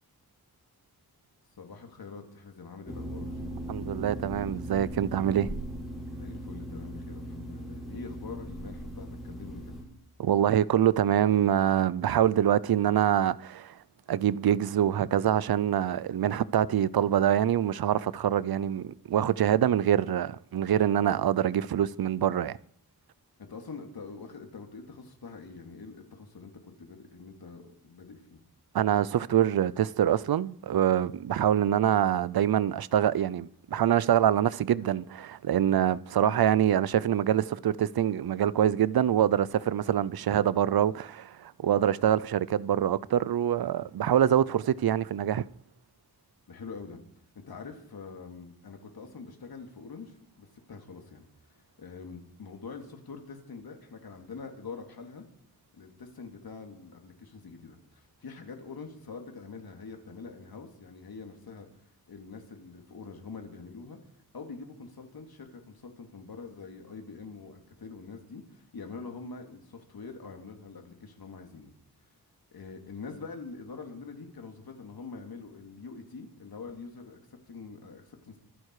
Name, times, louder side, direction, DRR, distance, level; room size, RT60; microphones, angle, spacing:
voice 1, 1.6-3.4 6.2-9.6 23.4-26.5 26.8-28.4 46.5-47.0 47.3-51.2 51.8-55.3 55.7-61.7 62.1-64.0 64.3-71.7 72.5-77.2 77.5-78.4, left 4 dB, 70° left, 3.0 m, -44 dB
sound 1, 2.9-9.8, equal, ahead, 6.4 m, -39 dB
voice 2, 3.7-5.5 10.2-13.7 14.1-22.6 28.7-45.4, right 10 dB, 70° right, 0.6 m, -25 dB
24.5 x 11.0 x 4.9 m
wide cardioid pair, 140°, 38 cm